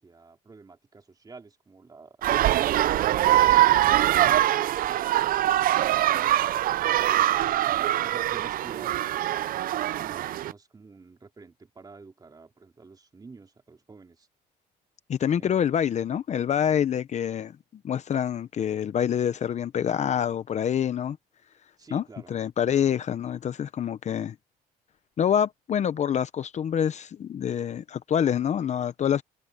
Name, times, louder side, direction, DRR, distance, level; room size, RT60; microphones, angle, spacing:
voice 1, 0.0-3.3 5.5-6.8 8.0-9.3 9.9-14.3 15.4-15.7 21.8-22.3, right 4 dB, 20° right, 3.2 m, -49 dB
sound 1, 2.2-10.5, right 13 dB, 55° right, 0.5 m, -23 dB
voice 2, 15.1-17.6 17.8-21.2 21.9-24.3 25.2-29.2, left 9 dB, 45° left, 0.8 m, -26 dB
cardioid pair, 110°, 17 cm